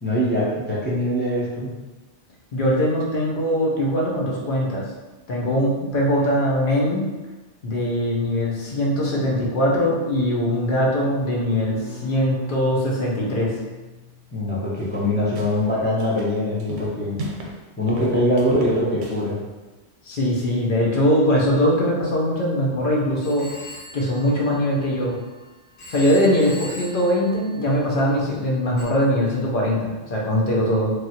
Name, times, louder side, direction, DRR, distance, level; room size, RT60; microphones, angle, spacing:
voice 1, 0.0-1.7 14.3-17.2 17.8-19.4, left 1 dB, 15° left, -7 dB, 0.3 m, -22 dB
voice 2, 2.5-4.8 5.3-7.0 7.6-13.5 20.1-23.5 23.9-25.1 25.9-30.9, equal, 50° left, -4 dB, 0.8 m, -21 dB
Bowed string instrument, 10.8-14.4, left 2 dB, 50° right, 0.8 m, -39 dB
sound 1, 14.8-15.7 16.0-17.6 17.9-19.3, right 1 dB, 80° right, 0.9 m, -35 dB
Telephone, 23.2-25.3 25.8-28.1 28.8-28.9, left 1 dB, 85° left, 1.2 m, -41 dB
3.2 x 2.4 x 2.7 m, 1.2 s
omnidirectional pair, 1.2 m